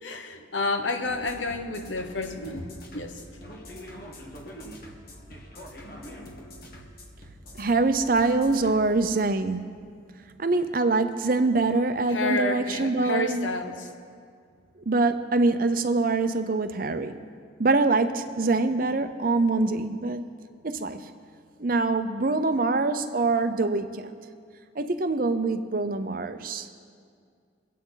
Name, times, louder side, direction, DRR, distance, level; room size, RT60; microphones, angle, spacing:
voice 1, 0.0-3.2 12.1-13.9, left 2 dB, 75° left, 5 dB, 1.1 m, -30 dB
sound 1, 1.0-8.9, equal, 50° left, 1.5 m, -44 dB
voice 2, 7.6-9.8 10.4-13.5 14.9-17.2 17.6-20.2 20.6-21.0 21.6-24.1 24.8-26.7, right 3 dB, 45° right, 10 dB, 0.6 m, -24 dB
24.0 x 8.4 x 4.0 m, 2.2 s
head